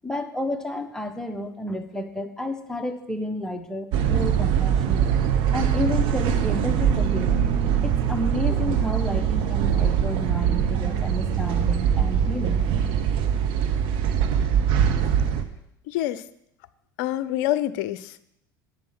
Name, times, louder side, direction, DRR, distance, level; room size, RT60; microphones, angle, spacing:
voice 1, 0.0-5.1 5.5-7.4 7.8-12.6, left 1 dB, 5° left, 5 dB, 1.4 m, -31 dB
sound 1, 3.9-15.4, right 8 dB, 55° right, 1.2 m, -22 dB
voice 2, 15.9-16.2 17.0-18.2, left 13 dB, 60° left, 16 dB, 0.6 m, -26 dB
10.5 x 8.4 x 6.0 m, 0.78 s
figure-of-eight pair, 70°, 11 cm